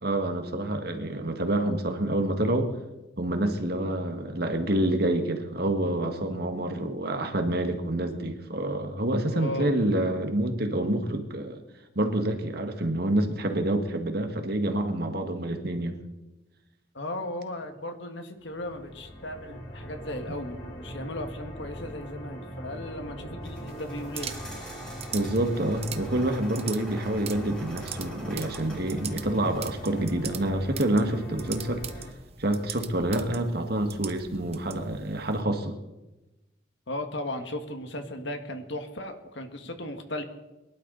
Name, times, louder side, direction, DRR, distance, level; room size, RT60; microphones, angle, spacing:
voice 1, 0.0-2.8 3.2-11.6 12.0-16.0 25.1-31.8 32.4-35.7, right 1 dB, 55° right, 5 dB, 1.8 m, -27 dB
voice 2, 9.3-9.7 16.9-24.4 36.9-40.2, left 1 dB, 65° left, 6 dB, 1.8 m, -36 dB
sound 1, 18.4-32.1, equal, 40° left, 5.4 m, -41 dB
sound 2, 23.4-30.0, equal, 5° left, 4.0 m, -46 dB
sound 3, 23.7-35.4, right 8 dB, 30° right, 0.9 m, -42 dB
23.0 x 12.0 x 4.1 m, 1.0 s
head